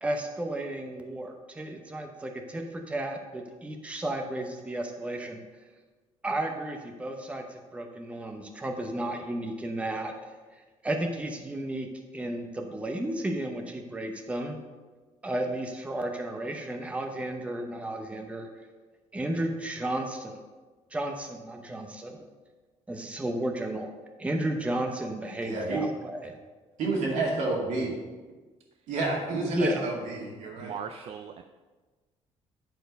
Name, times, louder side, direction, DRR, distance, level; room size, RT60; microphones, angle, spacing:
voice 1, 0.0-5.4 6.2-10.1 10.8-11.9 12.1-14.6 15.2-18.5 19.1-20.4 20.9-22.2 22.9-23.9 24.2-26.3 29.5-29.8, right 1 dB, 10° right, 3 dB, 0.7 m, -33 dB
voice 2, 25.4-25.9 26.8-28.0 28.9-30.8, right 3 dB, 85° right, -2 dB, 2.3 m, -29 dB
voice 3, 30.6-31.4, right 7 dB, 55° right, 7 dB, 0.4 m, -39 dB
10.0 x 4.6 x 5.2 m, 1.3 s
cardioid pair, 145°, 12 cm